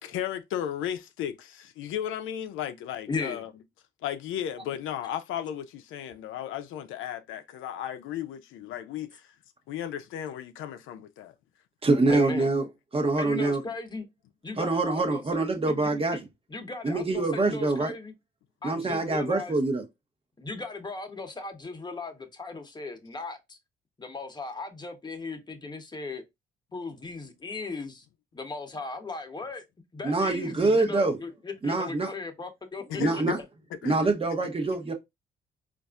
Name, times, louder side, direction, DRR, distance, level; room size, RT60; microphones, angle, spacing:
voice 1, 0.0-3.5 4.0-9.3 9.7-11.3 32.9-33.2 33.8-34.0, left 10 dB, 85° left, 0.5 m, -35 dB
voice 2, 3.1-3.4 12.1-12.5 13.2-14.0 14.4-16.2 16.5-18.1 18.6-19.6 20.4-23.6 24.0-26.2 26.7-28.0 28.3-29.6 29.9-32.8 33.1-33.2, left 3 dB, 20° left, 0.9 m, -37 dB
voice 3, 11.8-12.7 12.9-13.6 14.6-16.2 16.8-17.9 18.6-19.8 30.0-31.2 31.6-32.1 32.9-33.4 33.8-34.9, right 3 dB, 30° right, 0.9 m, -25 dB
4.0 x 2.5 x 2.3 m
cardioid pair, 90°, 20 cm